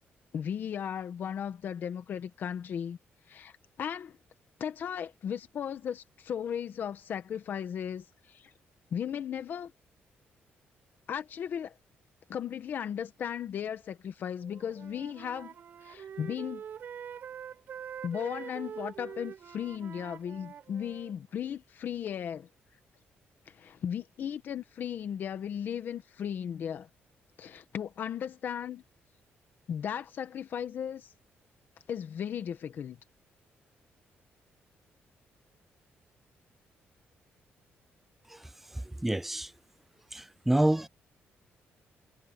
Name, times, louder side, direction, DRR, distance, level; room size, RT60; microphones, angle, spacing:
voice 1, 0.3-3.0 3.3-3.5 3.8-4.2 4.6-8.5 8.9-9.7 11.1-11.7 12.3-15.5 15.8-16.6 18.0-22.5 23.5-26.9 27.4-28.8 29.7-31.1 31.9-33.0, left 8 dB, 50° left, 1.5 m, -36 dB
Wind instrument woodwind instrument, 14.4-21.1, right 8 dB, 50° right, 7.7 m, -44 dB
voice 2, 39.0-39.5 40.1-40.9, right 1 dB, 5° right, 0.3 m, -27 dB
cardioid pair, 160°, 4 cm